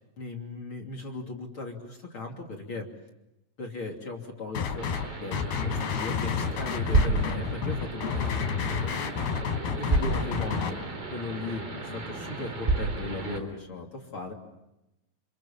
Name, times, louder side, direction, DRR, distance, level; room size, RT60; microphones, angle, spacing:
voice 1, 0.2-2.9 3.6-4.9 5.2-9.1 9.8-10.8 11.1-14.3, left 3 dB, 35° left, 1 dB, 3.4 m, -37 dB
sound 1, 4.5-5.0 5.3-10.7, left 6 dB, 75° left, 5.8 m, -30 dB
sound 2, 4.8-13.4, right 2 dB, 35° right, 4.4 m, -40 dB
sound 3, 6.9-7.3 8.8-8.9 9.9-10.3 10.8-10.9 11.5-11.6 12.7-13.0, right 2 dB, 20° right, 2.7 m, -24 dB
28.5 x 28.0 x 7.4 m, 0.94 s
omnidirectional pair, 4.6 m